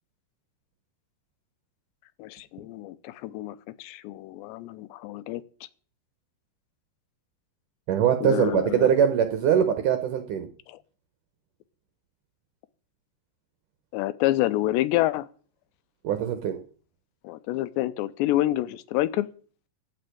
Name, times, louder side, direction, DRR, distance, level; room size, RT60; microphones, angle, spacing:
voice 1, 2.2-5.4 8.2-8.9 10.7-10.8 13.9-15.3 17.2-19.3, left 15 dB, 85° left, 2.9 m, -28 dB
voice 2, 7.9-10.5 16.0-16.6, right 8 dB, 70° right, 2.0 m, -22 dB
14.5 x 5.4 x 9.2 m
omnidirectional pair, 5.0 m